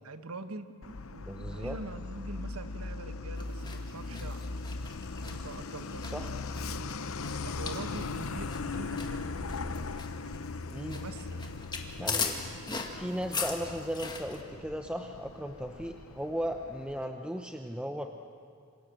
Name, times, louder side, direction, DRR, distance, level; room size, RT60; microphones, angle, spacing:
voice 1, 0.0-4.4 5.2-6.3 7.2-9.3 10.9-11.5, right 2 dB, 80° right, 10 dB, 1.4 m, -44 dB
Truck, 0.8-17.0, left 3 dB, 75° left, 0.9 m, -39 dB
voice 2, 1.2-1.8 6.1-6.3 10.7-11.0 12.0-12.4 12.9-18.1, equal, 5° right, 5 dB, 0.8 m, -36 dB
sound 1, 3.4-14.4, left 5 dB, 20° left, 2.1 m, -40 dB
27.5 x 26.5 x 7.8 m, 2.3 s
head